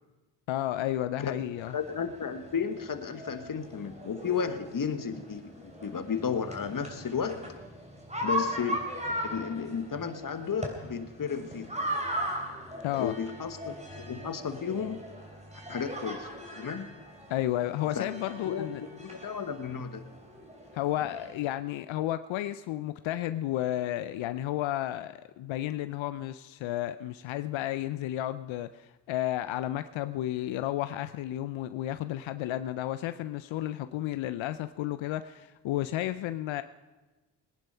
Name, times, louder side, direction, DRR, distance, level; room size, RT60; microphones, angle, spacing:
voice 1, 0.5-1.8 12.8-13.1 17.3-18.8 20.7-36.6, left 13 dB, 85° left, 0.6 m, -32 dB
sound 1, 1.6-21.3, equal, 15° right, 3.5 m, -39 dB
voice 2, 1.7-7.4 8.2-8.9 9.2-11.8 13.0-15.0 15.7-16.3 16.5-16.9 17.9-18.1 18.4-20.0, left 6 dB, 45° left, 1.5 m, -33 dB
19.5 x 10.5 x 5.6 m
cardioid pair, 65°, 45 cm